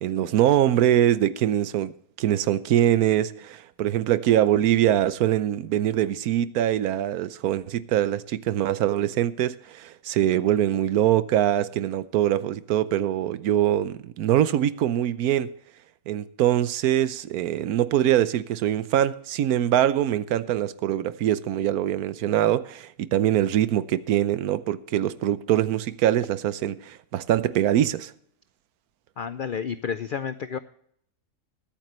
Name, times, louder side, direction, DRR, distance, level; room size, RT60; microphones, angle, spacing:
voice 1, 0.0-15.5 16.1-28.1, right 11 dB, 85° right, 1.2 m, -23 dB
voice 2, 29.2-30.6, left 7 dB, 90° left, 0.4 m, -30 dB
21.5 x 9.1 x 3.1 m
omnidirectional pair, 1.5 m